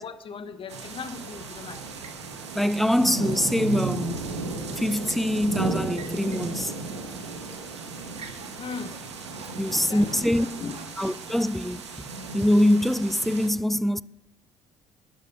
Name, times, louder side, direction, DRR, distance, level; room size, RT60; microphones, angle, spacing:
voice 1, 0.0-1.8 8.6-9.0 9.7-10.8, left 5 dB, 40° left, 1.2 m, -37 dB
sound 1, 0.7-13.5, right 3 dB, 85° right, 1.2 m, -35 dB
sound 2, 2.0-2.3 4.5-5.3 5.9-6.5 6.9-7.0 7.5-7.7 8.1-11.4, right 5 dB, 45° right, 1.9 m, -47 dB
voice 2, 2.5-4.3 4.8-6.8 9.6-10.5 11.0-11.9 12.3-14.0, left 1 dB, ahead, 0.4 m, -24 dB
12.0 x 10.0 x 5.2 m
figure-of-eight pair, 50°, 14 cm